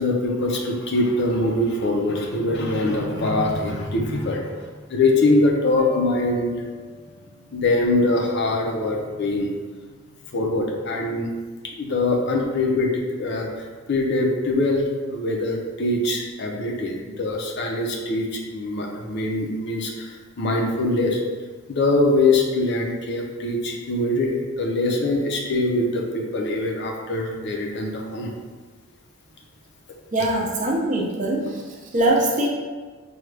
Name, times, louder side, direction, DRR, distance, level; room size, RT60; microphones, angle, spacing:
voice 1, 0.0-4.4 4.9-6.6 7.5-9.5 10.3-11.3 11.8-13.5 13.9-21.2 21.7-28.3, left 2 dB, 50° left, 0 dB, 0.5 m, -23 dB
sound 1, 5.8-7.7, right 2 dB, 10° right, 0.9 m, -41 dB
voice 2, 30.1-32.5, right 1 dB, 35° right, -1 dB, 0.5 m, -22 dB
4.8 x 2.3 x 3.3 m, 1.4 s
head